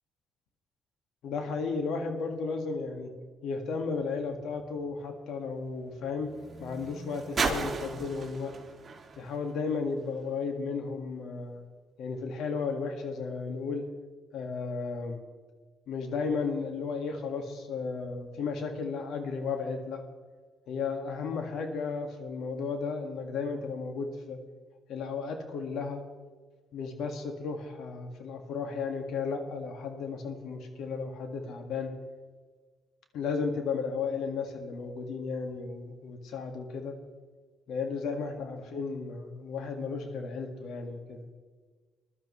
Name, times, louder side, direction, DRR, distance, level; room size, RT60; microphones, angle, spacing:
voice 1, 1.2-3.1 3.4-8.5 9.2-11.6 12.0-13.9 14.3-15.2 15.9-20.0 20.7-24.4 24.9-26.0 26.7-31.9 33.1-37.0 37.7-41.3, left 4 dB, 80° left, 4 dB, 1.8 m, -34 dB
sound 1, 3.8-10.3 11.2-11.3, right 4 dB, 40° right, 2.1 m, -38 dB
21.0 x 12.0 x 3.2 m, 1.4 s
cardioid pair, 90°, 0 cm